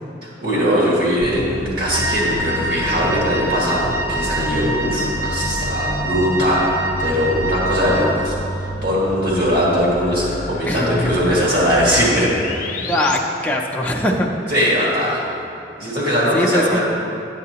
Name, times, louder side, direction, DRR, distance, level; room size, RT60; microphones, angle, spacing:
voice 1, 0.2-6.7 7.0-12.3 14.5-15.2 15.8-16.8, equal, 55° right, -6 dB, 1.8 m, -20 dB
sound 1, 1.2-13.2, left 1 dB, 45° left, 0.7 m, -29 dB
Wind instrument woodwind instrument, 1.9-8.3, right 2 dB, 75° right, 1.6 m, -26 dB
voice 2, 10.7-11.1 12.9-14.3 16.3-16.8, left 1 dB, 10° left, -2 dB, 0.5 m, -21 dB
10.5 x 8.3 x 2.9 m, 2.5 s
head